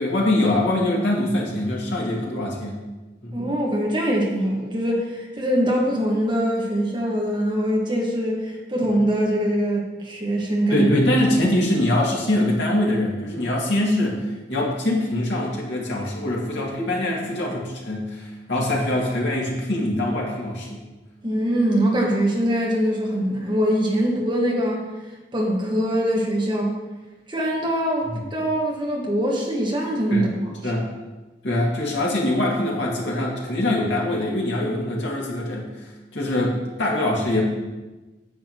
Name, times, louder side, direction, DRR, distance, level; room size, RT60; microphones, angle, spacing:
voice 1, 0.0-2.7 3.2-3.3 10.7-20.8 28.1-28.2 30.1-30.3 30.6-30.9 31.4-37.4, left 1 dB, 85° left, -3 dB, 2.2 m, -23 dB
voice 2, 3.3-10.9 21.2-24.8 25.3-26.8 27.3-30.7, equal, 25° right, -2 dB, 1.5 m, -23 dB
9.4 x 8.4 x 3.0 m, 1.2 s
head